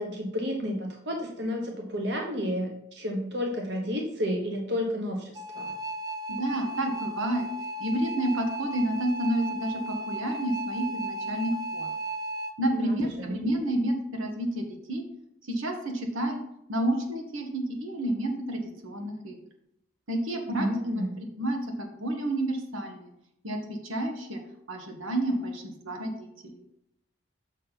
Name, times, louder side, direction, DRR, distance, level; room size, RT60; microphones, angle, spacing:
voice 1, 0.0-5.7 12.7-13.3 20.5-21.2, equal, 60° right, 1 dB, 1.0 m, -31 dB
sound 1, 5.3-12.5, right 1 dB, 20° right, 0.3 m, -35 dB
voice 2, 6.3-7.5 7.8-11.9 12.6-15.0 15.5-16.4 16.7-19.4 20.1-20.7 21.2-23.1 23.4-24.4 24.7-26.5, right 1 dB, 90° right, 3 dB, 1.5 m, -30 dB
6.5 x 6.4 x 4.0 m, 0.79 s
head